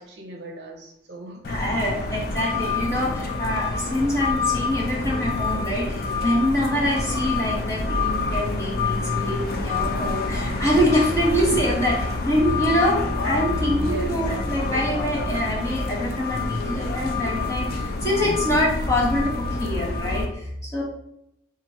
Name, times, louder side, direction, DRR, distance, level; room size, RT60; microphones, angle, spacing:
voice 1, 0.0-1.4 2.1-2.2 13.8-14.2, right 2 dB, 65° right, 1 dB, 0.6 m, -38 dB
sound 1, 1.4-20.3, left 3 dB, 50° left, 0.4 m, -27 dB
voice 2, 1.5-20.8, equal, 15° left, -4 dB, 0.8 m, -25 dB
2.9 x 2.5 x 4.1 m, 0.78 s
head